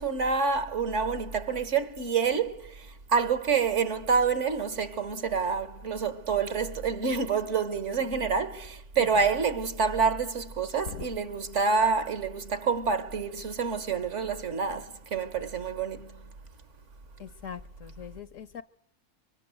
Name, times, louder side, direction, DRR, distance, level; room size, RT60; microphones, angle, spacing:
voice 1, 0.0-16.2, right 5 dB, 65° right, 1.8 m, -28 dB
voice 2, 9.0-9.3 10.9-11.1 17.2-18.6, left 6 dB, 80° left, 1.6 m, -41 dB
24.5 x 24.5 x 7.9 m
omnidirectional pair, 1.4 m